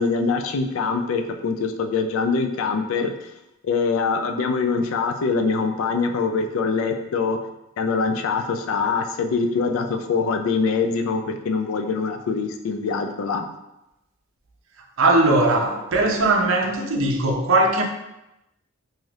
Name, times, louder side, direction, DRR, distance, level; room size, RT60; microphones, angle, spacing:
voice 1, 0.0-3.1 3.6-7.4 7.8-13.4, left 4 dB, 75° left, 6 dB, 0.3 m, -23 dB
voice 2, 15.0-17.8, right 2 dB, 70° right, 2 dB, 0.5 m, -19 dB
2.7 x 2.4 x 3.2 m, 0.92 s
head